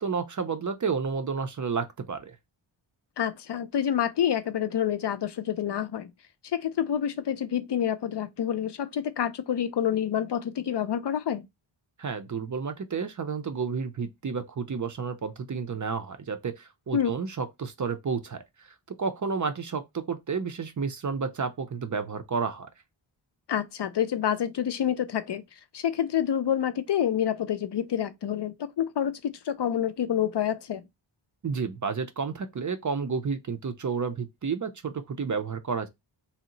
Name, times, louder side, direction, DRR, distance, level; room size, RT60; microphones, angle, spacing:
voice 1, 0.0-2.4 12.0-18.4 18.9-22.7 31.4-35.9, right 5 dB, 40° right, 0.5 m, -31 dB
voice 2, 3.2-6.1 6.5-11.4 16.9-17.1 23.5-25.4 25.7-30.8, left 9 dB, 60° left, 0.5 m, -28 dB
2.8 x 2.1 x 3.8 m
wide cardioid pair, 55°, 48 cm